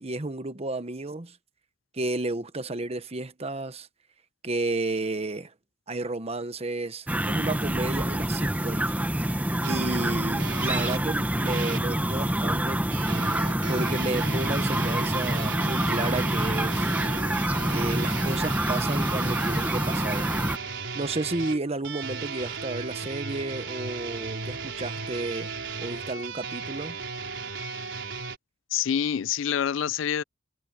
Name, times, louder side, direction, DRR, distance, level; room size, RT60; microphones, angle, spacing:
voice 1, 0.0-1.4 1.9-3.9 4.4-5.5 5.9-8.9 9.7-12.8 13.7-16.9 17.7-20.3 20.9-25.5 25.8-27.0, right 2 dB, 35° right, 1.1 m, -32 dB
sound 1, 7.1-20.6, right 1 dB, 10° right, 1.1 m, -26 dB
sound 2, 9.6-11.9 12.9-28.4, right 4 dB, 70° right, 5.3 m, -35 dB
voice 2, 28.7-30.2, left 8 dB, 80° left, 0.4 m, -26 dB
head